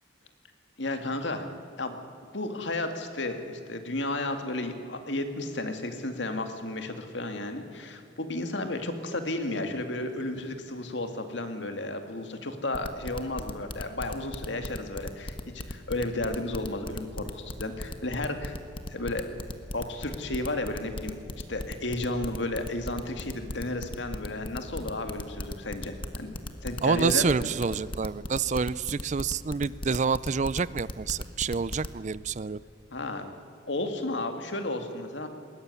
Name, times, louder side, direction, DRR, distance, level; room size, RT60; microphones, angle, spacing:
voice 1, 0.8-1.5 1.8-2.0 2.3-15.4 15.7-18.6 18.9-19.3 19.7-21.2 21.5-26.4 26.6-27.4 32.9-33.3 33.7-35.3, left 2 dB, 65° left, 7 dB, 2.1 m, -33 dB
sound 1, 12.7-32.0, left 1 dB, 25° left, 1.3 m, -36 dB
voice 2, 26.8-32.6, right 5 dB, 40° right, 18 dB, 0.4 m, -28 dB
21.0 x 18.0 x 9.7 m, 2.7 s
head